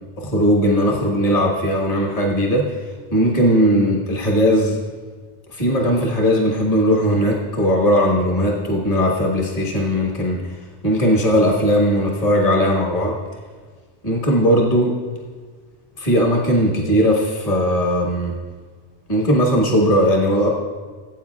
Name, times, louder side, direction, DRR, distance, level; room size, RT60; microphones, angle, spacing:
voice 1, 0.2-2.8 3.1-4.8 5.5-10.5 10.8-13.2 14.0-15.0 16.0-18.3 19.1-20.5, equal, 35° left, -2 dB, 1.6 m, -18 dB
17.5 x 8.7 x 2.4 m, 1.5 s
omnidirectional pair, 1.1 m